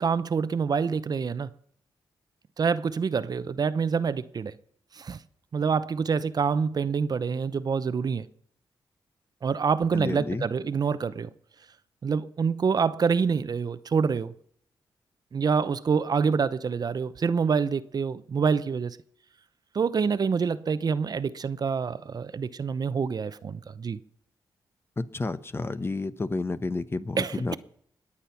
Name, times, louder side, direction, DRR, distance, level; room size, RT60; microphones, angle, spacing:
voice 1, 0.0-1.5 2.6-4.5 4.9-5.2 5.5-8.3 9.4-11.3 12.0-14.3 15.3-19.0 19.7-24.0 27.2-27.6, right 5 dB, 50° right, 0.8 m, -26 dB
voice 2, 9.9-10.5 25.0-27.6, left 3 dB, 30° left, 0.9 m, -30 dB
21.5 x 8.6 x 5.8 m
cardioid pair, 80°, 8 cm